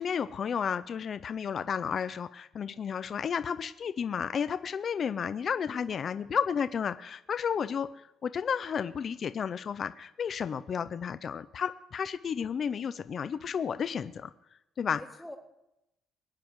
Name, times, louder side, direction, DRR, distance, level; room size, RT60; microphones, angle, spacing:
voice 1, 0.0-14.3 14.8-15.0, left 7 dB, 35° left, 12 dB, 0.5 m, -32 dB
voice 2, 5.6-6.3 14.9-15.4, left 1 dB, 5° left, 2 dB, 1.8 m, -49 dB
23.5 x 9.3 x 4.6 m, 0.85 s
cardioid pair, 170°, 0 cm